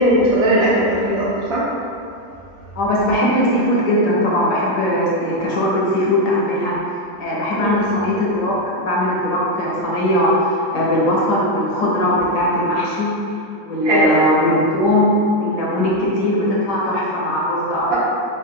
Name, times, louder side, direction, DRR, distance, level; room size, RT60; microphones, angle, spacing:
voice 1, 0.0-1.6 7.6-7.9 13.8-14.2 15.9-16.1 17.9-18.0, right 1 dB, 75° right, -8 dB, 1.2 m, -18 dB
voice 2, 2.8-6.7 7.2-13.1 13.6-18.0, left 1 dB, 70° left, -5 dB, 1.0 m, -19 dB
3.6 x 2.1 x 2.6 m, 2.5 s
omnidirectional pair, 1.5 m